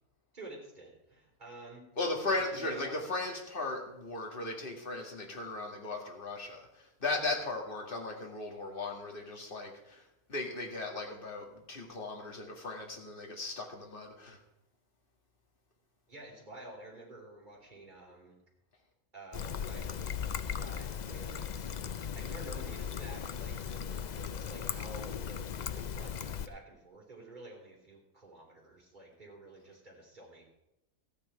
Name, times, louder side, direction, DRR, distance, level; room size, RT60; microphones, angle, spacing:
voice 1, 0.3-1.9 2.4-3.1 10.9-11.0 16.1-18.4 19.1-21.7 22.1-25.5 25.7-30.4, right 2 dB, 30° right, -3 dB, 3.9 m, -50 dB
voice 2, 2.0-14.4, left 2 dB, 40° left, 1 dB, 2.2 m, -37 dB
Trickle dribble, 19.3-26.5, left 7 dB, 75° left, 0.4 m, -38 dB
13.5 x 9.7 x 4.8 m, 0.89 s
omnidirectional pair, 1.5 m